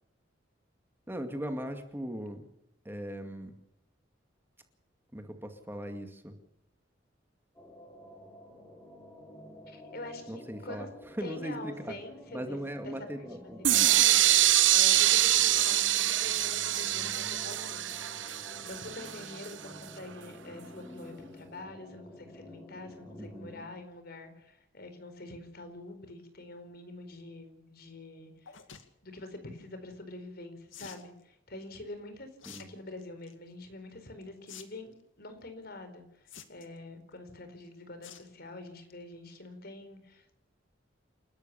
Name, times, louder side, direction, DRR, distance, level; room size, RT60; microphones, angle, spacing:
voice 1, 1.1-2.4 2.9-3.5 5.1-6.3 10.3-10.9 11.2-11.9 12.3-13.9 23.2-23.5 32.5-32.7, equal, 10° right, 5 dB, 2.2 m, -39 dB
sound 1, 7.5-23.7, left 1 dB, 15° left, 5.2 m, -50 dB
voice 2, 9.6-10.9 11.2-17.9 18.6-28.6 29.0-32.3 32.7-40.3, left 2 dB, 55° left, 8 dB, 4.6 m, -46 dB
sound 2, 13.6-19.5, right 13 dB, 70° right, 1.1 m, -25 dB
sound 3, 28.5-28.9 30.7-31.1 32.4-32.6 33.0-33.3 34.5-34.6 34.9-35.0 36.3-36.8 38.0-38.3 38.7-38.9 39.3-39.4 39.6-39.7, left 8 dB, 85° left, 2.3 m, -48 dB
29.0 x 13.5 x 7.0 m, 0.82 s
head